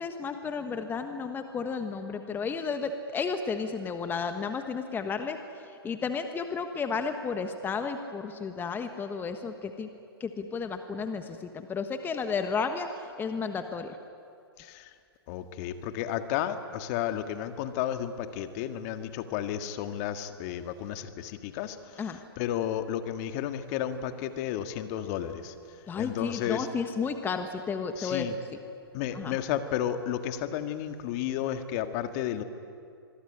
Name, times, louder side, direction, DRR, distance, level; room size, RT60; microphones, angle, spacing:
voice 1, 0.0-5.4 5.8-9.9 10.2-12.9 13.2-14.0 22.0-22.2 25.9-28.3 29.1-29.4, left 5 dB, 15° left, 7 dB, 1.3 m, -32 dB
voice 2, 14.6-14.9 15.3-22.0 22.4-25.5 26.0-26.7 28.0-28.3 28.9-32.4, left 10 dB, 40° left, 8 dB, 1.8 m, -32 dB
25.5 x 22.0 x 10.0 m, 2.4 s
figure-of-eight pair, 115°, 13 cm